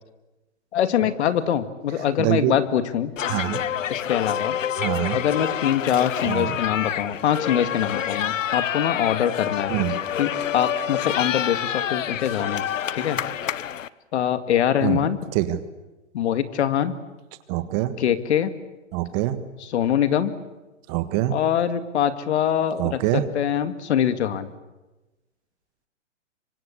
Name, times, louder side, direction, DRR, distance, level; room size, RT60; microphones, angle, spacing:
voice 1, 0.7-3.1 3.9-4.6 5.1-9.7 10.2-12.7 12.9-13.2 14.1-15.2 16.1-17.0 18.0-18.5 19.6-20.4 21.3-24.5, left 9 dB, 60° left, 11 dB, 2.2 m, -23 dB
voice 2, 2.2-2.5 3.3-3.6 4.8-5.2 6.3-6.5 9.7-10.0 14.8-15.0 15.3-15.6 17.5-18.0 18.9-19.4 20.9-21.4 22.8-23.3, right 14 dB, 30° right, 12 dB, 1.6 m, -24 dB
sound 1, 3.2-13.9, left 10 dB, 80° left, 1.1 m, -27 dB
27.0 x 24.5 x 8.5 m, 1.1 s
hypercardioid pair, 145°, 38 cm